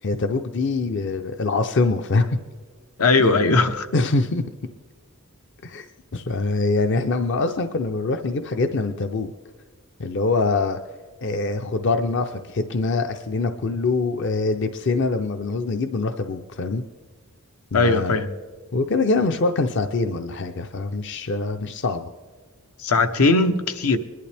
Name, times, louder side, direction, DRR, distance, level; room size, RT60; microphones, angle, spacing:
voice 1, 0.0-2.4 3.2-3.5 3.9-4.4 5.6-5.9 6.1-9.3 10.0-10.8 11.2-16.8 17.7-18.2 18.7-22.1, left 3 dB, 55° left, 7 dB, 0.6 m, -24 dB
voice 2, 3.0-3.9 17.7-18.3 22.8-24.0, left 3 dB, 85° left, 8 dB, 0.9 m, -19 dB
21.5 x 11.5 x 3.4 m, 1.5 s
head